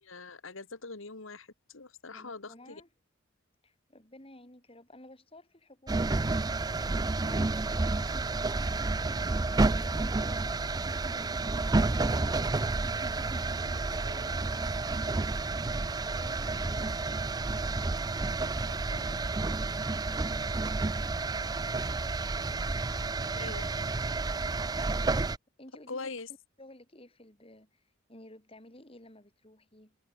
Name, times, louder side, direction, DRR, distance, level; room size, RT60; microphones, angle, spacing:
voice 1, 0.0-2.8 23.3-23.7 25.9-26.3, left 3 dB, 75° left, 2.0 m, -42 dB
voice 2, 2.1-2.9 3.6-8.8 9.5-10.6 12.0-15.4 16.0-17.2 18.4-21.0 24.8-25.1 25.6-26.2 26.6-27.8 28.1-30.0, left 1 dB, 25° left, 5.1 m, -54 dB
sound 1, 5.9-25.4, right 3 dB, 20° right, 0.4 m, -30 dB
head